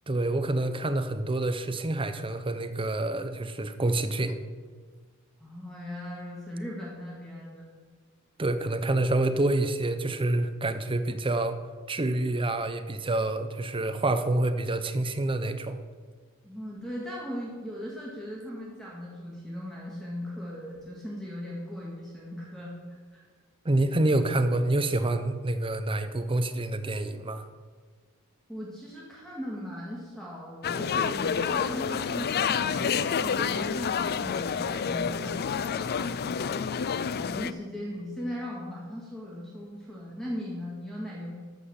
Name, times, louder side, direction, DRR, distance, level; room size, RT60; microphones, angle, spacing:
voice 1, 0.1-4.4 8.4-11.6 11.9-15.8 23.6-27.4, right 2 dB, 25° right, 9 dB, 0.7 m, -27 dB
voice 2, 5.4-7.7 16.4-23.2 28.5-36.4 37.2-41.3, equal, ahead, -5 dB, 1.9 m, -38 dB
sound 1, 30.6-37.5, left 6 dB, 45° left, 0.4 m, -29 dB
13.0 x 5.6 x 7.1 m, 1.5 s
head